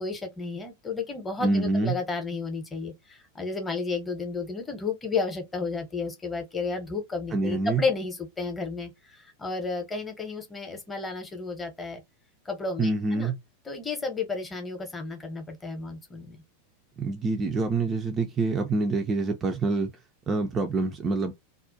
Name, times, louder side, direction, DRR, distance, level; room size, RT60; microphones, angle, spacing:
voice 1, 0.0-12.0 12.5-13.3 13.7-16.4, left 4 dB, 15° left, 0.7 m, -32 dB
voice 2, 1.4-2.0 7.3-7.8 12.8-13.4 17.0-19.9 20.3-21.3, right 3 dB, 25° right, 0.3 m, -26 dB
2.4 x 2.0 x 2.6 m
figure-of-eight pair, 90°, 0 cm